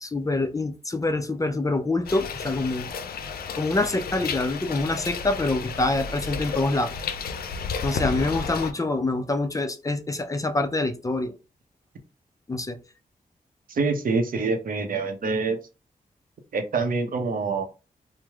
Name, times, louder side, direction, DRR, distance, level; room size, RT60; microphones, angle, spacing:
voice 1, 0.0-2.9 3.5-6.9 7.8-11.3 12.5-12.8, left 2 dB, 20° left, 0.4 m, -26 dB
sound 1, 2.0-8.7, left 5 dB, 85° left, 0.4 m, -32 dB
voice 2, 13.7-15.6 16.5-17.6, right 4 dB, 70° right, 0.6 m, -25 dB
3.1 x 2.0 x 3.4 m
wide cardioid pair, 85°, 15 cm